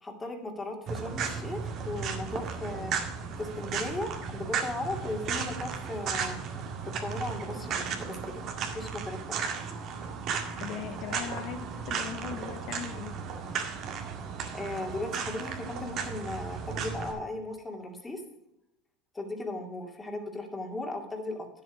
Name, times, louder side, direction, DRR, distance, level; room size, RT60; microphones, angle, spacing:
voice 1, 0.0-2.9 3.4-6.4 6.8-8.5 8.7-9.4 14.5-18.2 19.1-21.5, left 2 dB, 15° left, 3 dB, 2.4 m, -37 dB
sound 1, 0.9-17.1, right 6 dB, 45° right, 2.0 m, -35 dB
voice 2, 10.6-13.1, left 8 dB, 60° left, 6 dB, 1.0 m, -39 dB
10.0 x 7.9 x 4.9 m, 0.84 s
supercardioid pair, 115°, 0 cm